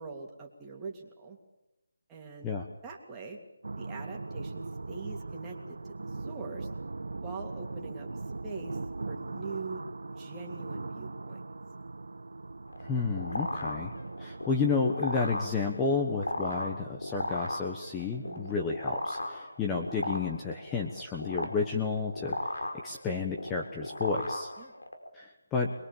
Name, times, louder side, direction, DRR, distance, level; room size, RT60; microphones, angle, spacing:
voice 1, 0.0-1.4 2.1-2.5 2.8-3.4 3.8-6.7 7.2-8.1 8.4-8.8 9.1-9.8 10.1-11.4 18.2-18.5 24.6-24.7, right 4 dB, 15° right, -1 dB, 2.9 m, -43 dB
sound 1, 3.6-18.9, right 3 dB, 75° right, 1.0 m, -41 dB
sound 2, 12.7-25.1, left 2 dB, 85° left, 5.1 m, -36 dB
voice 2, 12.8-13.9 14.2-24.5 25.1-25.7, left 4 dB, 10° left, 1 dB, 1.4 m, -31 dB
24.5 x 22.0 x 7.3 m, 0.94 s
figure-of-eight pair, 165°, 0 cm